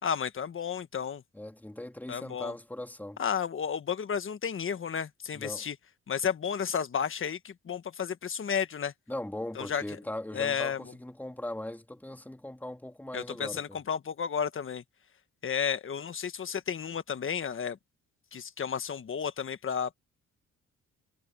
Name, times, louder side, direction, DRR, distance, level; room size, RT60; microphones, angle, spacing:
voice 1, 0.0-1.2 2.1-2.5 3.2-5.8 6.1-8.9 9.5-9.8 10.3-10.9 13.1-14.8 15.4-17.8 18.3-19.9, left 7 dB, 45° left, 1.5 m, -32 dB
voice 2, 1.3-3.2 5.3-5.6 9.1-13.8, left 1 dB, 5° left, 3.0 m, -39 dB
cardioid pair, 90°, 30 cm